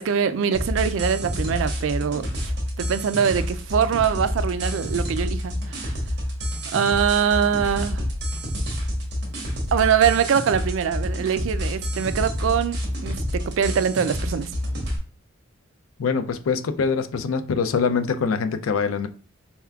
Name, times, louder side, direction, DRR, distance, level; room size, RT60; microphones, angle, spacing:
voice 1, 0.0-5.9 6.7-8.0 9.7-14.5, right 7 dB, 70° right, 0.3 m, -23 dB
sound 1, 0.5-15.0, equal, 55° right, 1.1 m, -28 dB
voice 2, 16.0-19.1, left 5 dB, 85° left, 0.4 m, -24 dB
4.3 x 3.5 x 2.3 m
head